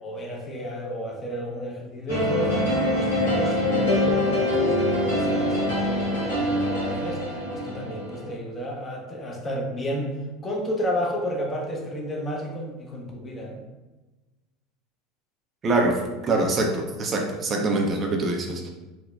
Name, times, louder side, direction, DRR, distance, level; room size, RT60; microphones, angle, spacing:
voice 1, 0.0-7.2 7.5-10.2 10.4-13.6 16.3-16.7, equal, 25° left, 0 dB, 0.7 m, -32 dB
sound 1, 2.1-8.3, left 1 dB, 75° left, 1.1 m, -24 dB
voice 2, 15.6-18.7, right 2 dB, 35° right, 2 dB, 0.4 m, -24 dB
3.8 x 2.2 x 2.3 m, 1.1 s
hypercardioid pair, 75°, 0 cm